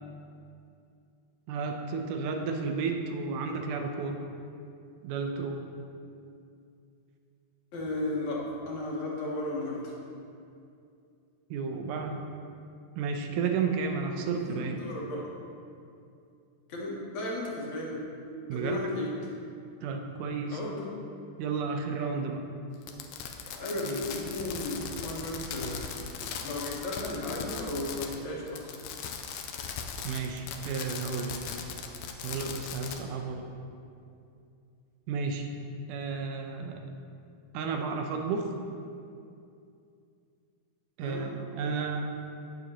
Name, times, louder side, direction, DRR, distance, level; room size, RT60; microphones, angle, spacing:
voice 1, 1.5-4.2 5.0-5.6 11.5-12.2 13.0-14.8 18.5-18.8 19.8-20.6 21.4-22.4 23.8-24.0 30.0-31.4 32.2-33.5 35.1-35.5 35.9-36.9 37.5-38.5 41.0-42.1, right 5 dB, 75° right, 4 dB, 2.1 m, -32 dB
voice 2, 7.7-9.9 14.3-15.3 16.7-18.0 18.5-19.1 20.5-20.9 23.4-25.9 26.4-28.8 41.0-41.3, left 1 dB, 60° left, -4 dB, 2.7 m, -35 dB
Fireworks, 22.8-28.2 28.5-33.0, left 7 dB, 80° left, 2.0 m, -38 dB
17.5 x 6.8 x 3.0 m, 2.5 s
omnidirectional pair, 4.0 m